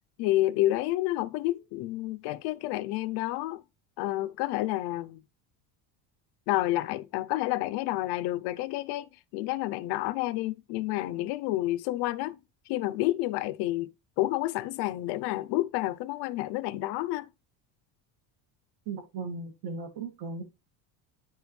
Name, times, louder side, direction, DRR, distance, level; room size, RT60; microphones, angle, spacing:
voice 1, 0.2-3.6 4.0-5.2 6.5-12.4 12.7-17.3, left 16 dB, 60° left, 0.6 m, -29 dB
voice 2, 18.9-20.4, right 4 dB, 50° right, 2.3 m, -37 dB
9.7 x 5.2 x 3.2 m
cardioid pair, 165°, 45 cm